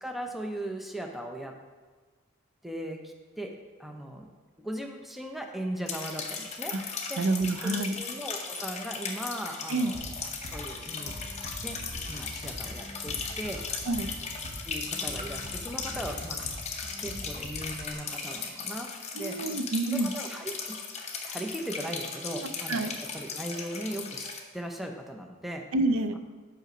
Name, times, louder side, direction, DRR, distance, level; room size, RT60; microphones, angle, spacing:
voice 1, 0.0-1.6 2.6-4.3 4.6-6.8 7.1-7.2 7.6-10.0 10.5-11.2 11.6-11.8 12.1-13.7 14.6-16.6 17.0-19.4 19.9-20.8 21.3-25.7, right 1 dB, ahead, 3 dB, 0.5 m, -38 dB
sound 1, 5.9-24.4, left 5 dB, 35° left, 0.7 m, -37 dB
voice 2, 7.2-8.0 9.7-9.9 13.9-14.1 19.1-20.1 22.7-22.9 25.7-26.2, right 2 dB, 75° right, 10 dB, 0.5 m, -28 dB
sound 2, 9.9-17.9, equal, 45° right, 1.2 m, -43 dB
5.5 x 5.0 x 6.0 m, 1.4 s
head